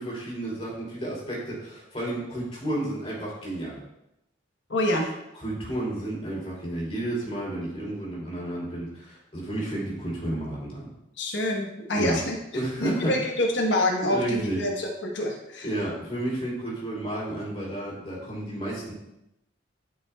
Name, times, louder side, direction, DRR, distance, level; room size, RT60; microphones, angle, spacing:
voice 1, 0.0-3.8 5.3-10.9 11.9-12.2 12.5-13.4 14.1-14.7 15.6-18.9, right 1 dB, 35° left, -4 dB, 3.1 m, -31 dB
voice 2, 4.7-5.1 11.2-12.4 12.8-15.7, left 1 dB, 75° left, 0 dB, 1.1 m, -26 dB
11.5 x 6.0 x 2.3 m, 0.87 s
head